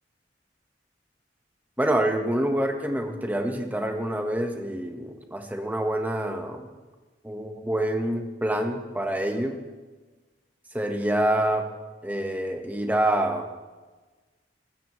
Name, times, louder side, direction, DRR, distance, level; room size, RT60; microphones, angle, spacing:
voice 1, 1.8-6.7 7.2-9.6 10.7-11.7 12.0-13.5, right 1 dB, 10° right, 4 dB, 1.3 m, -26 dB
20.5 x 14.5 x 3.2 m, 1.3 s
head